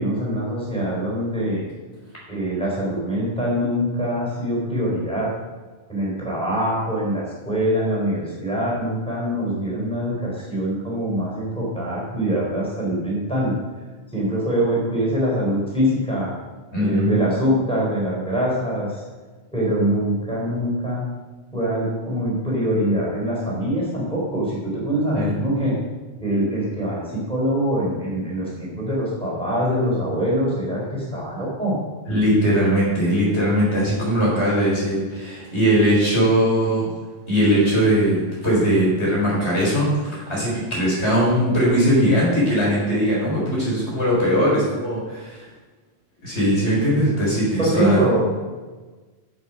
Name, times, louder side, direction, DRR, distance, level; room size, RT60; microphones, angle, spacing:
voice 1, 0.0-1.6 2.3-5.3 5.9-13.6 14.1-16.3 16.8-19.0 19.5-21.1 21.5-25.8 26.2-31.8 47.6-48.2, equal, 5° left, -5 dB, 4.1 m, -23 dB
voice 2, 16.7-17.2 25.1-25.3 32.1-36.9 37.3-45.5 46.2-48.0, equal, 80° left, -6 dB, 4.6 m, -20 dB
9.8 x 7.9 x 5.7 m, 1.3 s
omnidirectional pair, 1.1 m